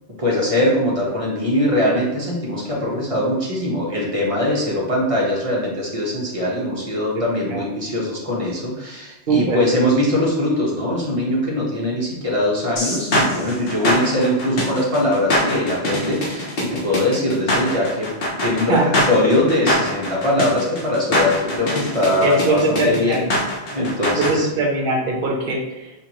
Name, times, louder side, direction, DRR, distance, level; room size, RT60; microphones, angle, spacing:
voice 1, 0.2-18.1 18.4-23.2 23.7-24.5, left 1 dB, 30° right, -4 dB, 1.1 m, -21 dB
voice 2, 7.2-7.6 9.3-9.6 18.7-18.9 22.2-23.2 24.2-25.9, right 3 dB, 55° right, 0 dB, 1.1 m, -21 dB
sound 1, 12.8-24.3, left 1 dB, 55° left, 1.0 m, -23 dB
6.8 x 2.6 x 3.0 m, 1.0 s
omnidirectional pair, 1.2 m